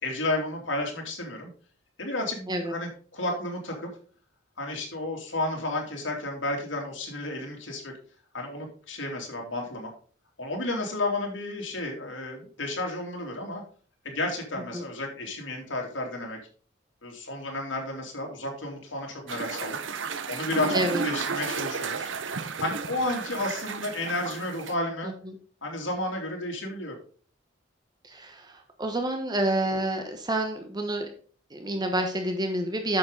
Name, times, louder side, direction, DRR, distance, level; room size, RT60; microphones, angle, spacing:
voice 1, 0.0-1.5 2.0-3.9 4.6-7.9 8.3-9.9 10.4-13.6 14.0-16.4 17.0-19.8 20.3-22.1 22.6-25.1 25.6-27.0, left 2 dB, 85° left, 0 dB, 2.8 m, -32 dB
sound 1, 19.3-24.7, right 5 dB, 80° right, 0.8 m, -33 dB
voice 2, 28.0-31.1 31.5-33.0, right 1 dB, 20° right, 4 dB, 1.0 m, -28 dB
8.9 x 6.8 x 3.8 m, 0.43 s
head